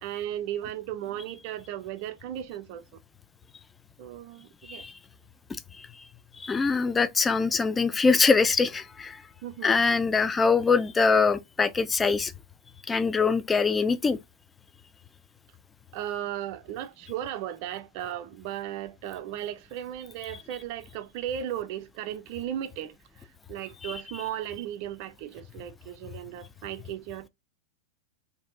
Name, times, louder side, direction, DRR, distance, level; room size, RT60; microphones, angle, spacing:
voice 1, 0.0-2.9 4.0-4.9 9.4-9.8 15.9-27.3, right 11 dB, 45° right, 0.4 m, -36 dB
voice 2, 6.4-9.2 9.6-12.3 12.9-14.2 23.8-23.9, left 4 dB, 15° left, 0.3 m, -23 dB
2.6 x 2.3 x 3.7 m
figure-of-eight pair, 90°, 0 cm